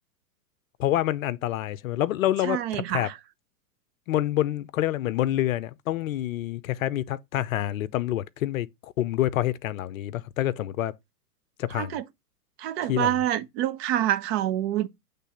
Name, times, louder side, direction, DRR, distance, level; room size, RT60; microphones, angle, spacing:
voice 1, 0.8-3.1 4.1-10.9 11.6-12.0 12.9-13.1, left 13 dB, 55° left, 0.7 m, -27 dB
voice 2, 2.4-3.2 11.7-12.0 12.6-14.9, right 12 dB, 40° right, 0.8 m, -27 dB
8.3 x 3.4 x 5.7 m
hypercardioid pair, 120°, 49 cm